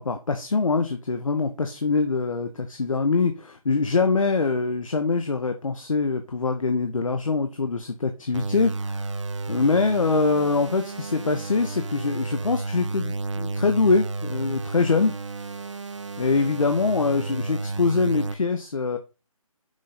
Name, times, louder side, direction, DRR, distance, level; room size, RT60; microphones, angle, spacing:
voice 1, 0.0-9.1 9.5-15.1 16.2-19.0, left 4 dB, 65° left, 0.9 m, -24 dB
sound 1, 8.3-18.3, right 3 dB, 55° right, 0.7 m, -32 dB
6.2 x 3.8 x 4.3 m
figure-of-eight pair, 160°, 18 cm